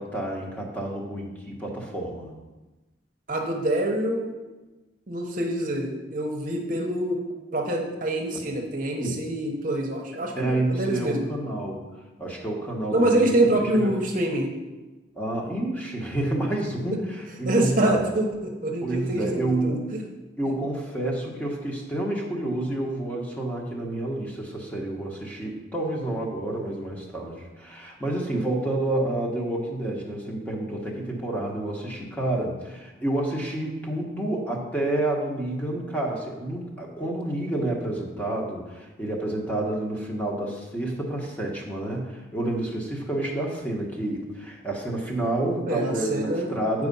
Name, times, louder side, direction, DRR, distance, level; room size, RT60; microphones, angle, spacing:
voice 1, 0.0-2.3 9.0-9.1 10.3-11.8 12.2-13.3 13.6-13.9 15.2-18.0 18.8-19.8 20.4-46.9, right 1 dB, 10° left, -2 dB, 1.3 m, -29 dB
voice 2, 3.3-4.3 5.1-7.2 7.5-11.3 12.9-14.5 17.4-20.0 45.7-46.5, right 1 dB, 45° right, 0 dB, 1.0 m, -25 dB
8.7 x 4.8 x 5.4 m, 1.1 s
head